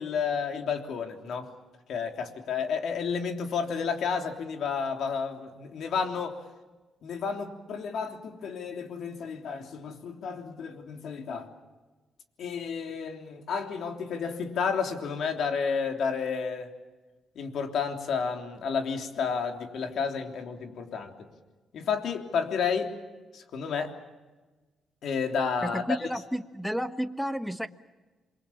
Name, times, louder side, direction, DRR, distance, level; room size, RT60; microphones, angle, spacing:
voice 1, 0.0-1.5 1.9-6.4 7.0-11.5 12.4-16.7 17.3-21.3 21.7-23.0 23.3-23.9 25.0-25.8, left 6 dB, 70° left, 4 dB, 3.3 m, -31 dB
voice 2, 25.6-27.7, equal, ahead, 8 dB, 1.3 m, -31 dB
28.0 x 23.0 x 7.3 m, 1.2 s
cardioid pair, 90°, 0 cm